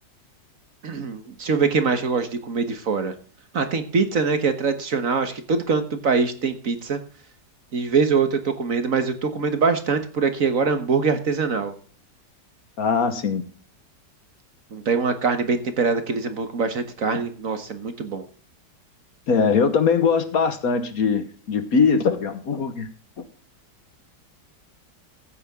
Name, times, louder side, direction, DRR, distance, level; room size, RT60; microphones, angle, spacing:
voice 1, 0.8-3.1 3.5-7.0 7.7-11.7 14.7-18.2, right 5 dB, 50° right, 9 dB, 1.6 m, -23 dB
voice 2, 12.8-13.4 19.3-22.9, left 5 dB, 55° left, 10 dB, 1.5 m, -21 dB
15.0 x 8.5 x 3.6 m, 0.44 s
omnidirectional pair, 1.9 m